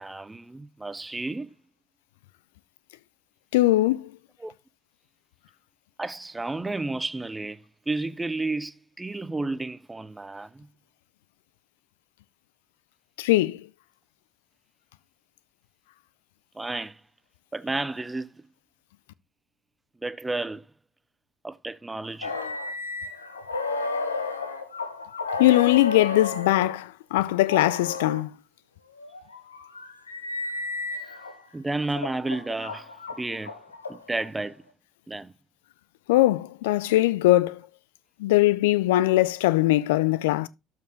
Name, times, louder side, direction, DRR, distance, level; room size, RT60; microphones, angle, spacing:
voice 1, 0.0-1.6 4.4-4.5 6.0-10.7 16.5-17.0 17.5-18.4 20.0-20.6 21.4-22.3 31.5-32.9 33.2-33.5 33.9-34.6 35.1-35.3, right 2 dB, 15° right, 0.6 m, -32 dB
voice 2, 3.5-4.1 13.2-13.6 25.4-28.3 36.1-37.6 38.2-40.5, left 16 dB, 75° left, 0.4 m, -21 dB
sound 1, 22.2-26.8 27.4-28.2 29.0-31.3 31.9-34.3, left 4 dB, 90° left, 0.9 m, -32 dB
12.5 x 4.7 x 3.4 m
hypercardioid pair, 60°, 0 cm